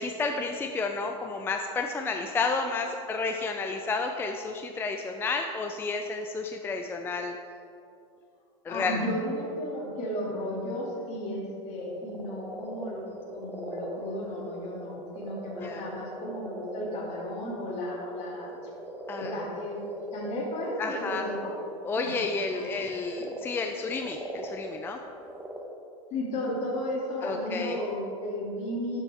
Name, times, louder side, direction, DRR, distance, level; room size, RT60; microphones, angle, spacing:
voice 1, 0.0-7.4 8.6-9.0 15.5-15.8 19.1-19.4 20.8-21.2 21.8-25.0 27.2-27.8, left 4 dB, 15° left, 4 dB, 0.4 m, -31 dB
voice 2, 8.7-13.0 13.3-18.5 19.1-21.6 22.0-22.1 22.5-22.8 26.1-29.0, left 1 dB, 40° left, -4 dB, 2.5 m, -34 dB
sound 1, 11.7-22.1 22.6-25.6, right 1 dB, 10° right, 1.0 m, -41 dB
12.5 x 7.3 x 3.5 m, 2.5 s
supercardioid pair, 130°, 17 cm